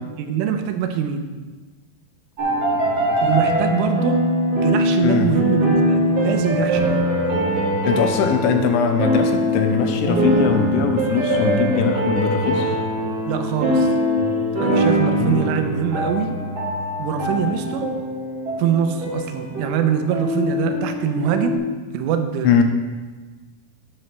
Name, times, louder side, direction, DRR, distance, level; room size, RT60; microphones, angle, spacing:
voice 1, 0.2-1.3 3.2-4.2 4.5-7.1 13.3-13.9 14.6-16.4 17.0-17.9 18.6-21.6 21.9-22.6, right 8 dB, 90° right, 7 dB, 3.3 m, -23 dB
sound 1, 2.4-21.6, equal, 40° right, 2.0 m, -22 dB
voice 2, 7.8-12.8 15.2-15.4 22.4-22.6, left 6 dB, 90° left, 6 dB, 3.2 m, -20 dB
11.0 x 9.2 x 3.3 m, 1.3 s
omnidirectional pair, 5.5 m